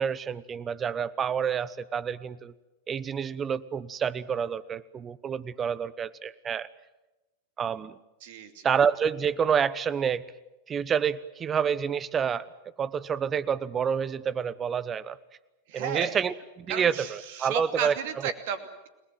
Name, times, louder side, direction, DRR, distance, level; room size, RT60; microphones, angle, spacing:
voice 1, 0.0-2.5 2.9-6.7 7.6-8.0 8.6-10.2 10.7-12.5 12.8-15.2 15.7-18.0, right 7 dB, 25° right, 19 dB, 1.0 m, -28 dB
voice 2, 8.2-8.7 15.7-16.2 16.7-18.9, right 8 dB, 50° right, 9 dB, 2.7 m, -34 dB
30.0 x 19.5 x 7.6 m, 1.0 s
figure-of-eight pair, 90°, 0 cm